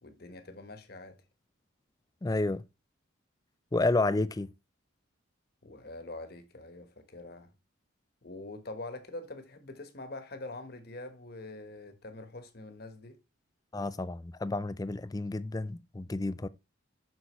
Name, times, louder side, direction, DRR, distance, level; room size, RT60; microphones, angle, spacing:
voice 1, 0.0-1.2 5.6-7.5 8.2-13.2, left 2 dB, 50° left, 1.2 m, -44 dB
voice 2, 2.2-2.6 3.7-4.5 13.7-16.5, left 2 dB, 20° left, 0.3 m, -30 dB
7.8 x 6.0 x 3.1 m
head